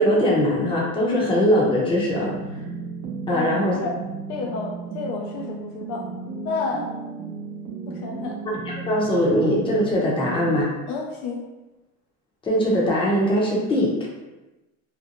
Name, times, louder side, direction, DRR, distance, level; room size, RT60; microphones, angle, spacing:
voice 1, 0.0-2.3 3.3-3.8 8.6-10.7 12.4-14.1, equal, 15° left, -4 dB, 0.6 m, -21 dB
sound 1, 1.9-10.6, right 4 dB, 50° right, 0.6 m, -34 dB
voice 2, 3.3-3.9 4.3-6.1 6.4-6.9 7.9-8.4 10.9-11.4, left 4 dB, 60° left, 0 dB, 0.5 m, -30 dB
2.5 x 2.2 x 2.9 m, 1.1 s
cardioid pair, 140°, 32 cm